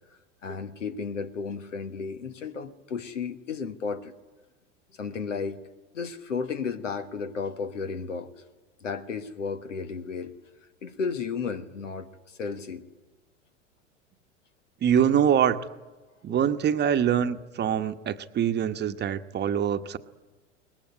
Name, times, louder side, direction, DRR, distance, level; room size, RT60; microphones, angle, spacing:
voice 1, 0.4-4.1 5.0-5.6 5.9-8.3 8.8-10.3 10.8-12.8, left 5 dB, 85° left, 10 dB, 1.6 m, -33 dB
voice 2, 14.8-15.7 16.2-20.0, right 9 dB, 30° right, 8 dB, 1.1 m, -24 dB
23.0 x 19.5 x 9.7 m, 1.3 s
hypercardioid pair, 90°, 37 cm